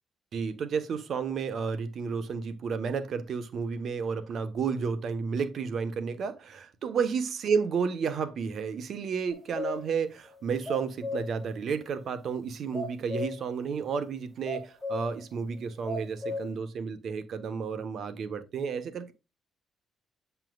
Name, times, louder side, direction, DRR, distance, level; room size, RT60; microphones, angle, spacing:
voice 1, 0.3-19.1, right 6 dB, 60° right, 1.2 m, -32 dB
sound 1, 9.3-10.0 10.3-10.4 10.7-11.4 12.7-13.5 14.5-15.2 15.9-16.5, left 2 dB, 5° left, 2.5 m, -35 dB
9.1 x 5.7 x 2.4 m
cardioid pair, 90°, 0 cm